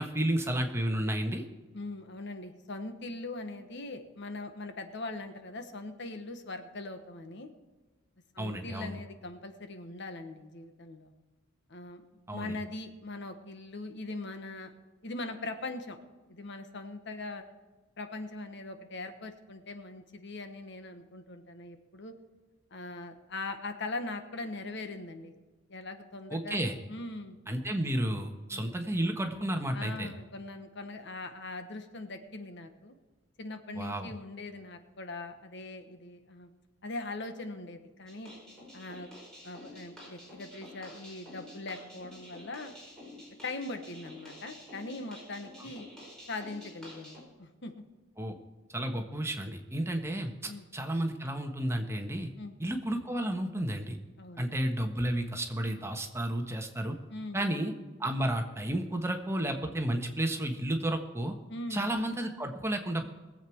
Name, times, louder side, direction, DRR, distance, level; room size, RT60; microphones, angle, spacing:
voice 1, 0.0-1.4 8.4-8.9 12.3-12.6 26.3-26.7 27.5-30.1 33.7-34.1 48.2-48.3 48.7-52.3 52.6-54.0 54.4-56.9 57.3-57.7 58.0-61.3 61.7-63.1, right 1 dB, 15° right, 4 dB, 1.3 m, -32 dB
voice 2, 1.7-7.5 8.3-11.1 11.7-12.0 12.3-14.7 15.0-16.0 16.3-17.4 18.0-22.1 22.7-25.3 25.7-26.6 26.9-27.4 28.5-28.7 29.7-32.9 33.4-36.5 36.8-38.3 38.7-39.1 39.4-42.7 43.4-45.9 46.3-47.8 50.5-50.6 52.4-52.5 54.2-54.5 57.1-57.5 61.5-61.9, left 2 dB, 60° left, 7 dB, 1.3 m, -41 dB
sound 1, 38.1-47.2, left 1 dB, 5° left, 5.2 m, -50 dB
20.5 x 7.9 x 4.6 m, 1.2 s
head